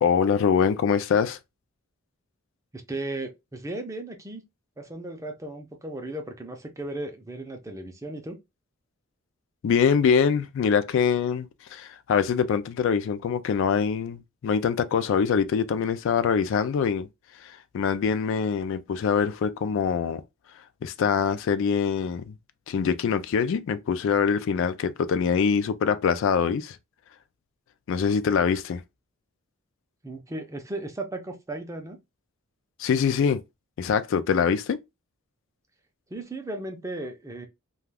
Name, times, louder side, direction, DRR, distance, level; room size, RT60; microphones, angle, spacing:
voice 1, 0.0-1.4 9.6-17.1 17.4-20.2 20.8-22.3 22.7-26.8 27.9-28.8 32.8-33.4 33.8-34.8, left 6 dB, 60° left, 0.3 m, -24 dB
voice 2, 2.7-4.4 4.8-8.4 30.0-32.0 36.1-37.5, right 2 dB, 15° right, 0.5 m, -36 dB
2.3 x 2.2 x 3.3 m
head